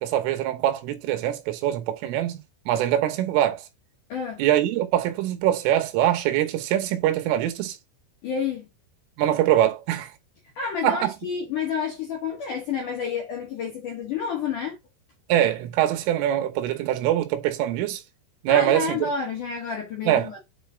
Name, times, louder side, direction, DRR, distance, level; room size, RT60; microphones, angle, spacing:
voice 1, 0.0-3.6 4.4-7.8 9.2-10.1 10.8-11.1 15.3-18.0 18.4-19.1 20.1-20.3, right 12 dB, 80° right, 3.7 m, -23 dB
voice 2, 4.1-4.4 8.2-8.7 10.6-14.8 18.5-20.4, left 6 dB, 65° left, 2.1 m, -29 dB
8.8 x 4.1 x 3.4 m
omnidirectional pair, 5.8 m